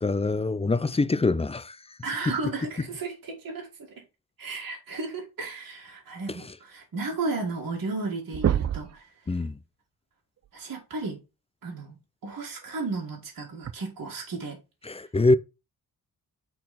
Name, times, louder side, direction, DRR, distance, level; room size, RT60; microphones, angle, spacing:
voice 1, 0.0-1.8 6.3-6.4 9.3-9.5 14.8-15.4, left 3 dB, 15° left, 0.5 m, -24 dB
voice 2, 2.0-4.0 4.4-9.1 10.5-11.2 11.6-14.6, right 3 dB, 65° right, 2.3 m, -34 dB
sound 1, 7.8-8.0 8.3-9.0 10.7-10.8 12.6-12.8 13.6-13.7, right 9 dB, 45° right, 0.5 m, -26 dB
8.4 x 4.1 x 4.2 m
cardioid pair, 85°, 35 cm